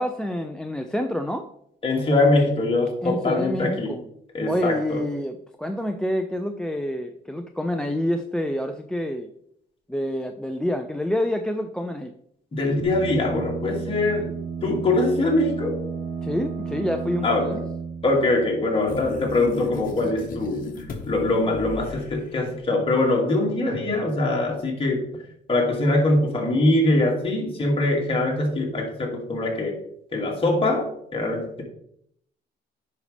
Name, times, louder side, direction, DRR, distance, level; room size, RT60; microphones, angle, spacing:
voice 1, 0.0-1.4 3.0-4.0 4.5-9.3 9.9-12.1 16.2-17.6, left 1 dB, 5° left, 7 dB, 0.4 m, -27 dB
voice 2, 1.8-3.9 4.3-5.0 12.5-14.3 14.6-15.8 17.2-17.5 18.0-20.7 21.1-25.1 25.5-29.8 30.1-31.6, left 2 dB, 30° left, -1 dB, 2.3 m, -23 dB
sound 1, 12.8-19.4, right 6 dB, 90° right, 1.3 m, -33 dB
sound 2, 18.9-22.6, left 4 dB, 50° left, 1.4 m, -35 dB
9.9 x 5.4 x 3.3 m, 0.71 s
cardioid pair, 125°, 19 cm